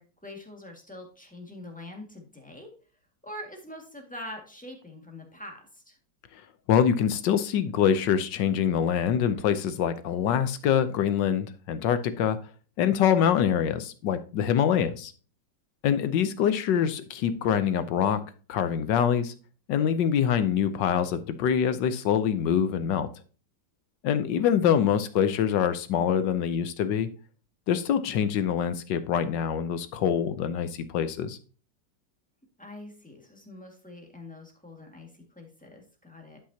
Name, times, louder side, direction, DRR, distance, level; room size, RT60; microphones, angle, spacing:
voice 1, 0.0-2.7 3.2-6.0 32.6-36.4, left 1 dB, 5° left, 1 dB, 1.7 m, -44 dB
voice 2, 6.7-12.4 12.8-15.1 15.8-18.2 18.5-19.3 19.7-23.1 24.0-27.1 27.7-31.4, left 8 dB, 75° left, 11 dB, 1.4 m, -25 dB
11.5 x 5.8 x 2.8 m, 0.38 s
omnidirectional pair, 2.0 m